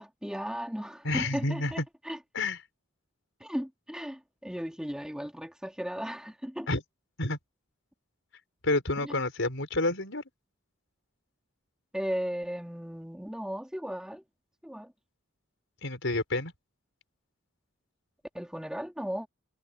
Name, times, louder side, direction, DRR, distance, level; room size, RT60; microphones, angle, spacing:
voice 1, 0.0-2.2 3.4-6.7 9.0-9.2 11.9-14.2 14.6-14.9 18.3-19.3, equal, 5° right, 2.6 m, -36 dB
voice 2, 1.0-1.7 2.3-2.6 6.7-6.8 7.2-7.4 8.6-10.2 15.8-16.5, left 2 dB, 65° left, 6.3 m, -29 dB
head